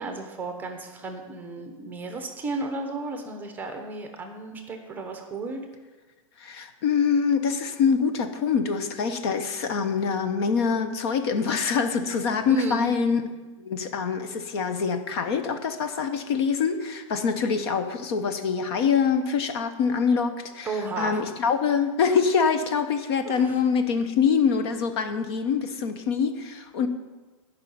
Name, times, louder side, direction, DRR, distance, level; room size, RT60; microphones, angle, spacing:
voice 1, 0.0-5.6 12.5-12.9 20.6-21.2 23.2-23.6, right 2 dB, 10° right, 5 dB, 0.9 m, -33 dB
voice 2, 6.4-13.2 13.6-20.7 21.0-26.9, left 6 dB, 50° left, 9 dB, 0.9 m, -25 dB
11.0 x 5.6 x 8.5 m, 1.3 s
supercardioid pair, 160°, 18 cm